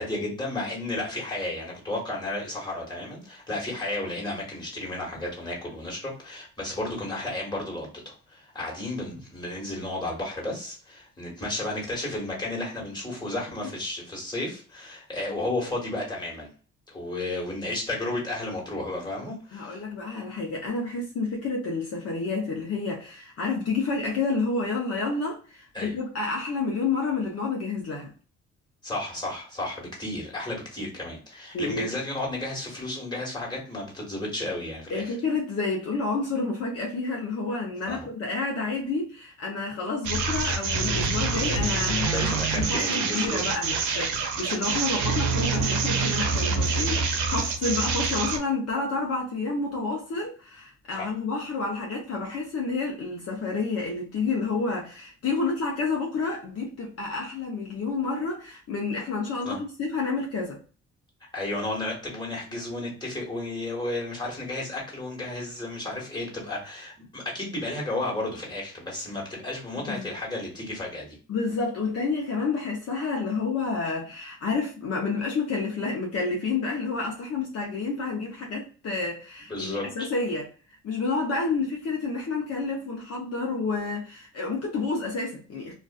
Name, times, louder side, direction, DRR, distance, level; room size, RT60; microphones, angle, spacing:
voice 1, 0.0-16.5 16.9-19.8 25.7-25.9 28.8-35.1 37.9-38.1 42.1-43.4 50.9-51.1 59.4-59.6 61.3-71.1 79.5-79.8, left 2 dB, 15° left, 1.4 m, -33 dB
voice 2, 19.5-28.1 31.5-31.9 34.9-60.6 69.8-70.0 71.3-80.5 80.8-85.7, left 3 dB, 55° left, 0.7 m, -29 dB
sound 1, 40.0-48.4, right 4 dB, 80° right, 0.6 m, -26 dB
2.4 x 2.4 x 2.2 m
cardioid pair, 90°, 30 cm